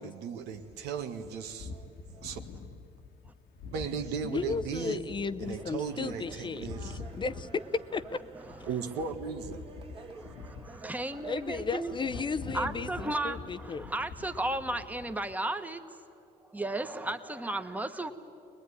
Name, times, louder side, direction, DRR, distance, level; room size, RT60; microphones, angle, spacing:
voice 1, 0.0-1.9 2.1-2.4 3.7-5.0 5.4-7.0 8.7-9.6, right 6 dB, 90° right, 6 dB, 1.7 m, -36 dB
sound 1, 0.5-15.3, left 3 dB, 70° left, 1.4 m, -46 dB
voice 2, 4.2-7.6 7.9-8.0 11.2-13.9, left 5 dB, 30° left, 13 dB, 0.7 m, -35 dB
sound 2, 5.4-13.3, right 4 dB, 30° right, 2.3 m, -50 dB
voice 3, 10.1-11.9 12.5-15.8 16.5-18.1, right 2 dB, 10° right, 8 dB, 1.4 m, -34 dB
22.5 x 20.5 x 9.9 m, 2.6 s
cardioid pair, 110°, 17 cm